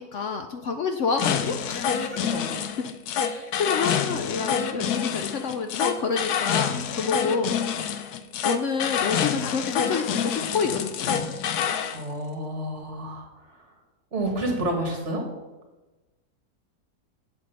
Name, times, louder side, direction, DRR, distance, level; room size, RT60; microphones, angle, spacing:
voice 1, 0.0-2.3 3.2-7.5 8.4-11.3, left 5 dB, 60° left, 7 dB, 0.9 m, -29 dB
sound 1, 1.2-12.0, left 8 dB, 85° left, 1.2 m, -27 dB
voice 2, 11.9-13.3 14.1-15.2, right 1 dB, 50° right, 2 dB, 2.2 m, -29 dB
8.1 x 7.5 x 5.6 m, 1.1 s
omnidirectional pair, 1.6 m